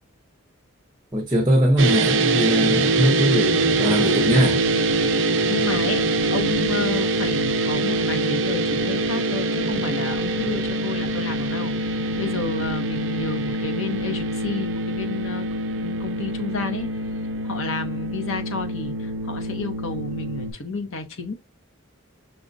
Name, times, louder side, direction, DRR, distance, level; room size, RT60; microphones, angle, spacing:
voice 1, 1.1-4.6, equal, 20° right, 0.7 m, -21 dB
sound 1, 1.8-20.5, right 2 dB, 60° right, 0.5 m, -24 dB
voice 2, 5.5-6.0 6.3-15.4 15.7-16.9 17.4-21.3, left 3 dB, 70° left, 0.8 m, -31 dB
5.9 x 2.1 x 2.5 m
head